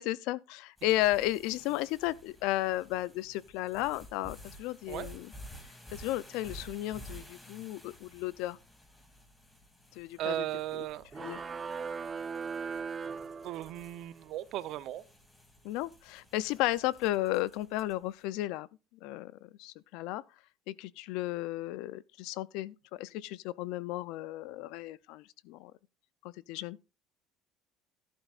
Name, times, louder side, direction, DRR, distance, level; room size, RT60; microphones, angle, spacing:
voice 1, 0.0-5.3 5.9-8.6 9.9-10.5 10.7-10.8 11.2-11.4 15.6-18.7 19.0-20.2 20.7-25.7 26.2-26.8, left 16 dB, 80° left, 0.5 m, -34 dB
sound 1, 0.8-18.1, equal, 15° left, 2.7 m, -53 dB
voice 2, 10.2-11.1 13.4-15.0, right 13 dB, 65° right, 0.7 m, -36 dB
sound 2, 11.1-14.0, right 5 dB, 30° right, 0.7 m, -39 dB
13.0 x 11.5 x 2.5 m
supercardioid pair, 100°, 0 cm